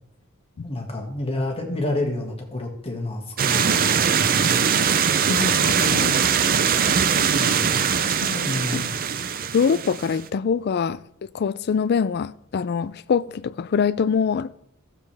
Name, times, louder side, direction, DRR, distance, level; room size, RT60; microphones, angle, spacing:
voice 1, 0.6-4.8 7.4-7.8 8.4-8.9, left 1 dB, 30° left, 1.9 m, -29 dB
sound 1, 3.4-10.3, right 7 dB, 45° right, 0.5 m, -21 dB
voice 2, 5.3-6.2 8.0-8.8 9.5-11.0 11.3-14.5, left 6 dB, 50° left, 0.4 m, -24 dB
14.0 x 7.3 x 3.4 m
head